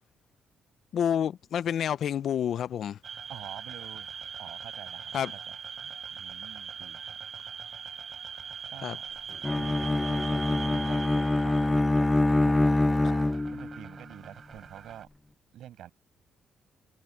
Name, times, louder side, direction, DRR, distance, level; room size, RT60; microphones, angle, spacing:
voice 1, 0.9-3.0 5.1-5.3 8.8-9.0, left 9 dB, 65° left, 0.5 m, -28 dB
sound 1, 3.0-15.0, right 7 dB, 50° right, 5.1 m, -42 dB
voice 2, 3.3-4.1 4.4-7.2 8.7-9.0 9.3-15.1 15.5-15.9, right 12 dB, 75° right, 5.8 m, -47 dB
Bowed string instrument, 9.4-13.8, left 2 dB, 15° left, 0.5 m, -25 dB
cardioid pair, 90°, 0 cm